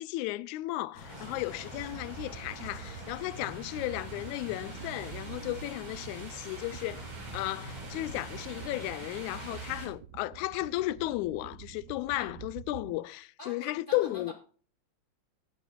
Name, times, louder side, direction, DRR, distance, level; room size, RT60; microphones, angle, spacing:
voice 1, 0.0-7.1 7.3-14.3, left 17 dB, 85° left, 2.0 m, -34 dB
sound 1, 0.9-9.9, left 3 dB, 50° left, 4.6 m, -49 dB
sound 2, 1.1-9.9, right 3 dB, 55° right, 4.1 m, -45 dB
sound 3, 1.7-13.0, right 10 dB, 80° right, 2.1 m, -48 dB
voice 2, 13.4-14.3, left 1 dB, 20° left, 2.0 m, -45 dB
17.5 x 8.3 x 2.3 m
omnidirectional pair, 3.3 m